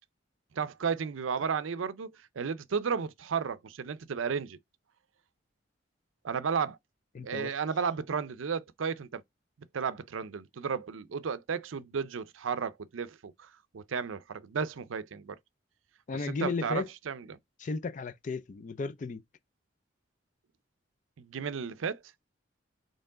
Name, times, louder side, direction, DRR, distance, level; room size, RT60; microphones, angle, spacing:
voice 1, 0.5-2.1 2.4-4.6 6.2-6.8 7.2-9.2 9.7-15.4 16.3-17.4 21.2-22.0, right 6 dB, 85° right, 0.5 m, -33 dB
voice 2, 7.1-7.5 16.1-16.9 17.6-19.2, left 4 dB, 40° left, 0.4 m, -34 dB
4.5 x 3.2 x 3.7 m
head